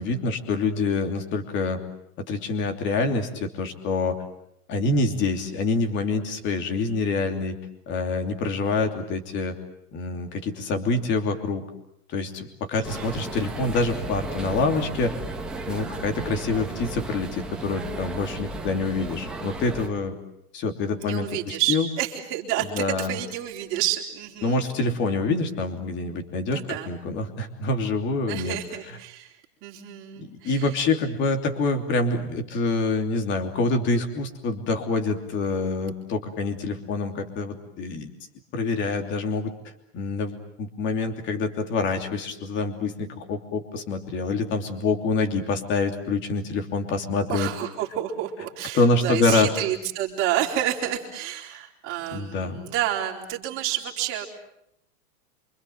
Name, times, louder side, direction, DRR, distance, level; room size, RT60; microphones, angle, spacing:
voice 1, 0.0-1.8 2.2-4.2 4.7-7.6 7.9-9.5 9.9-11.6 12.1-15.1 15.7-20.2 20.5-21.9 22.7-23.1 24.4-28.6 30.2-38.1 38.5-39.5 39.9-47.5 48.7-49.5 52.1-52.6, left 3 dB, 25° left, 5 dB, 3.0 m, -26 dB
sound 1, 12.8-19.9, right 2 dB, ahead, 1.7 m, -34 dB
voice 2, 12.8-13.1 21.0-24.6 26.5-26.9 28.3-29.3 29.6-30.8 47.3-54.3, right 12 dB, 25° right, 0 dB, 4.1 m, -29 dB
28.0 x 26.0 x 8.0 m, 0.78 s
supercardioid pair, 170°, 46 cm